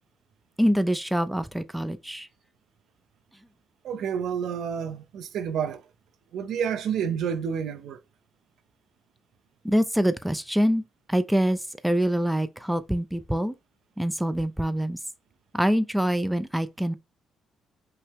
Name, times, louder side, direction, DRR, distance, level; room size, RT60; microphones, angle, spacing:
voice 1, 0.6-2.3 9.6-13.5 14.0-15.0 15.5-16.9, equal, 5° right, 0.4 m, -25 dB
voice 2, 3.8-5.8 6.3-8.0, right 7 dB, 75° right, 0.6 m, -29 dB
5.5 x 2.0 x 3.5 m
cardioid pair, 90°, 0 cm